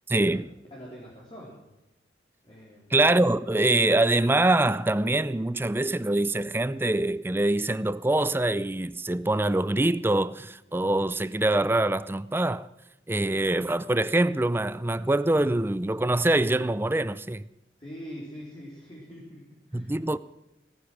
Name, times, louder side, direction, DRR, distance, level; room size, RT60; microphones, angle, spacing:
voice 1, 0.1-0.4 2.9-12.7 13.1-17.4 19.7-20.2, right 2 dB, 10° right, 0.4 m, -24 dB
voice 2, 0.7-1.6 2.4-2.9 17.8-19.9, equal, 30° left, 3.8 m, -43 dB
18.0 x 9.7 x 6.3 m
head